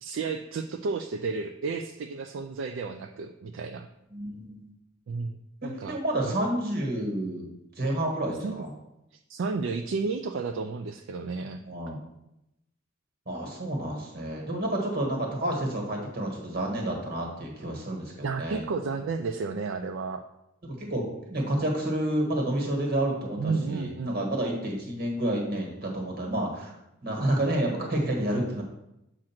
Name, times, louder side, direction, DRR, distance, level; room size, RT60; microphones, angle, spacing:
voice 1, 0.0-3.9 5.1-6.0 6.2-6.3 8.4-8.6 9.3-11.6 18.2-20.2 23.4-24.3, right 4 dB, 70° right, 6 dB, 0.4 m, -32 dB
voice 2, 4.1-4.7 5.6-7.5 7.8-8.7 11.6-12.0 13.3-18.6 20.6-26.7 27.0-28.6, right 1 dB, 50° right, 0 dB, 1.5 m, -29 dB
7.5 x 2.5 x 5.8 m, 0.87 s
head